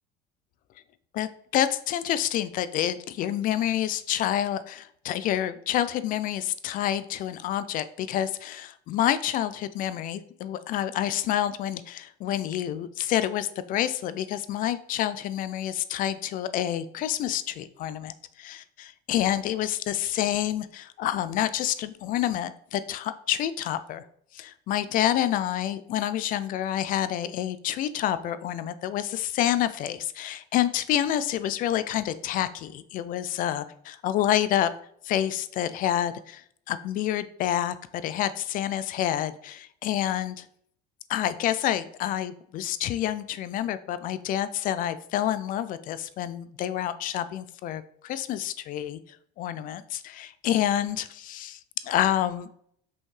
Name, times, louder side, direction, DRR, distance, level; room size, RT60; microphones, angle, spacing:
voice 1, 1.1-24.0 24.3-34.7 35.0-36.4 36.7-40.4 41.1-49.0 49.4-51.6 51.8-52.5, left 11 dB, 45° left, 14 dB, 0.4 m, -28 dB
5.5 x 5.4 x 3.2 m, 0.67 s
cardioid pair, 140°, 19 cm